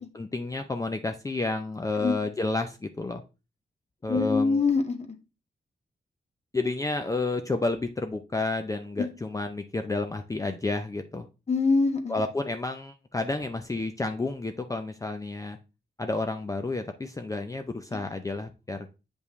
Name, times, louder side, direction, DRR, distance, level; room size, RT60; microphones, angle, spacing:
voice 1, 0.0-3.2 4.0-4.6 6.5-11.3 12.1-15.6 16.0-18.9, left 3 dB, 20° left, 6 dB, 0.5 m, -30 dB
voice 2, 4.1-5.1 9.0-9.1 11.5-12.1 17.9-18.0, left 4 dB, 40° left, 5 dB, 1.3 m, -24 dB
8.2 x 5.2 x 3.1 m, 0.30 s
wide cardioid pair, 135°, 18 cm